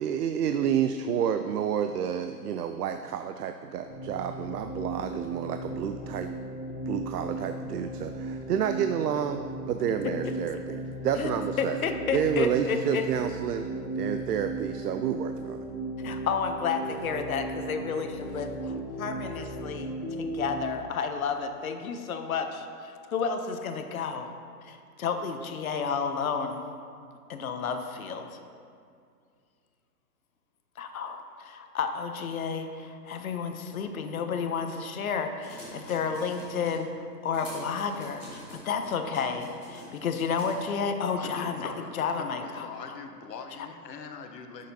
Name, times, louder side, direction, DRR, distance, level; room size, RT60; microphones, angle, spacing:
voice 1, 0.0-6.3 6.9-11.8 12.1-13.7 14.0-15.6, right 8 dB, 70° right, 8 dB, 0.5 m, -30 dB
sound 1, 3.9-20.7, right 2 dB, 30° left, 0.9 m, -36 dB
voice 2, 10.0-10.6 11.2-13.0 16.0-24.3 24.6-26.7 27.3-28.4 30.8-43.0, left 5 dB, 55° left, 6 dB, 0.8 m, -31 dB
sound 2, 35.4-36.8 37.3-40.6, equal, 5° right, 0.7 m, -47 dB
voice 3, 41.2-44.7, left 5 dB, 80° left, 5 dB, 1.0 m, -42 dB
11.5 x 6.6 x 2.8 m, 2.3 s
hypercardioid pair, 170°, 49 cm